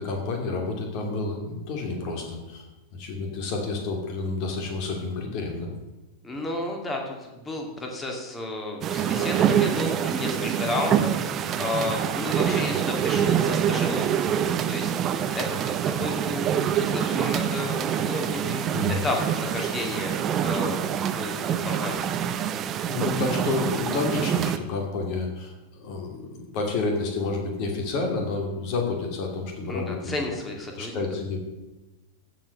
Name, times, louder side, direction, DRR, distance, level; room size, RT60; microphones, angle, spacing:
voice 1, 0.0-2.6 2.9-5.7 18.7-19.0 22.9-30.1 30.8-31.4, left 3 dB, 45° left, 2 dB, 2.6 m, -29 dB
voice 2, 6.2-14.3 14.7-14.9 15.3-22.1 29.7-31.0, left 2 dB, 15° left, 1 dB, 2.3 m, -32 dB
sound 1, 8.8-24.6, right 9 dB, 30° right, 0.7 m, -26 dB
14.5 x 5.1 x 6.5 m, 1.1 s
figure-of-eight pair, 90°, 0 cm